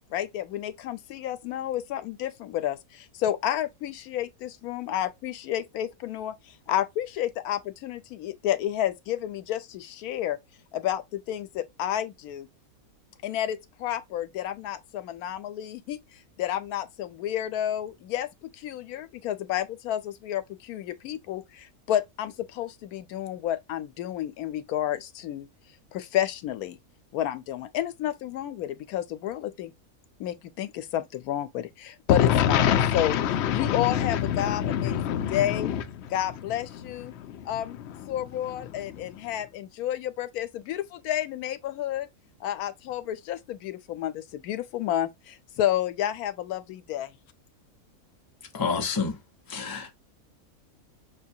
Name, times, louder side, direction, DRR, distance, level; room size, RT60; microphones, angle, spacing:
voice 1, 0.1-10.4 10.7-12.5 13.2-25.5 25.9-26.8 27.1-29.7 30.2-32.6 32.9-33.1 33.5-35.7 36.1-37.1 37.4-37.8 38.1-42.1 42.4-47.2, left 12 dB, 90° left, 1.1 m, -31 dB
voice 2, 32.1-36.2 36.7-39.2, left 9 dB, 65° left, 0.7 m, -27 dB
voice 3, 48.5-49.2 49.5-49.9, left 5 dB, 20° left, 0.6 m, -28 dB
6.1 x 2.3 x 2.7 m
omnidirectional pair, 1.5 m